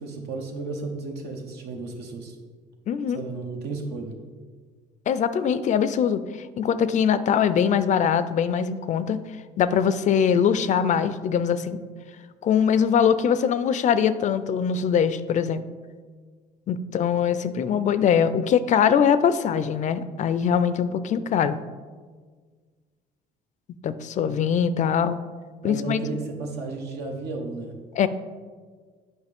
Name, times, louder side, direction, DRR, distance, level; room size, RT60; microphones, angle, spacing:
voice 1, 0.0-2.4 3.1-4.2 25.6-27.8, right 3 dB, 75° right, 2 dB, 1.2 m, -33 dB
voice 2, 2.9-3.2 5.1-6.2 6.6-9.2 9.6-11.8 12.4-15.6 16.7-21.6 23.8-25.2 25.6-26.0 27.9-28.1, left 7 dB, 45° left, 14 dB, 0.4 m, -22 dB
8.1 x 5.5 x 3.5 m, 1.5 s
cardioid pair, 110°, 17 cm